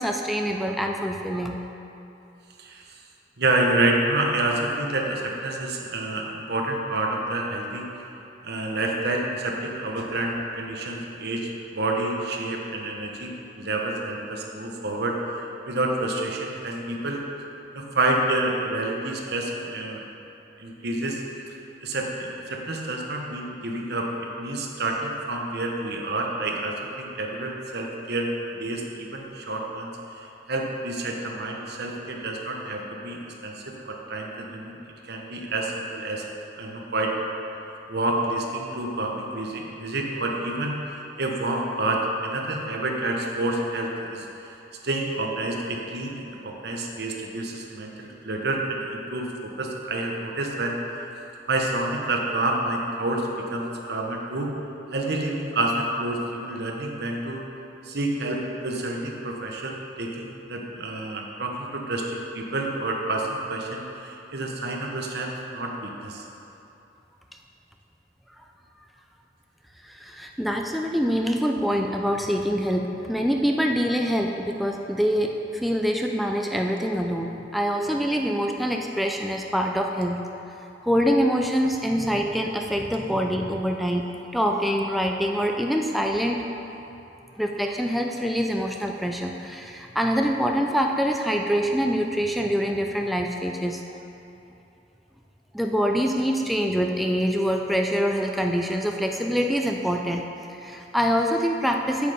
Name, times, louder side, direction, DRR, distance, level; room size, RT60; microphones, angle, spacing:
voice 1, 0.0-1.6 69.8-80.2 80.8-84.0 84.3-86.5 87.4-94.0 95.5-100.2 100.5-102.1, equal, ahead, 1 dB, 0.4 m, -25 dB
voice 2, 3.4-7.9 8.4-13.3 13.6-15.1 15.7-17.2 17.7-20.0 20.6-21.2 21.8-28.3 28.6-34.8 35.1-36.2 36.6-37.1 37.9-44.3 44.8-50.8 51.5-54.5 54.9-57.4 57.8-66.2, right 2 dB, 65° right, 0 dB, 1.1 m, -28 dB
8.4 x 7.7 x 5.0 m, 2.9 s
head